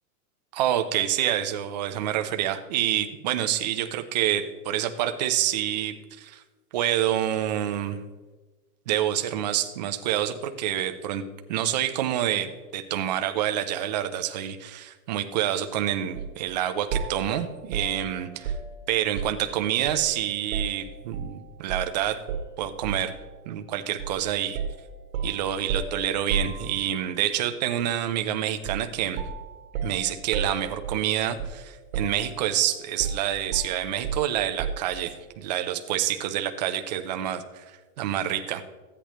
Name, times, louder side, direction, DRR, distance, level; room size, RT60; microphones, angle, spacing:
voice 1, 0.5-6.4 6.7-8.0 8.9-11.2 11.5-18.5 18.9-22.2 22.6-23.2 23.5-24.6 25.2-29.2 29.8-37.7 38.0-38.6, right 11 dB, 30° right, 7 dB, 0.4 m, -27 dB
sound 1, 16.2-16.4 16.9-19.5 19.9-21.3 21.7-21.9 22.3-23.2 24.0-24.2 24.6-27.1 28.6-28.9 29.2-31.7 31.9-32.6 33.0-35.0, right 6 dB, 55° right, 1.3 m, -33 dB
14.5 x 8.4 x 3.0 m, 1.3 s
supercardioid pair, 165°, 46 cm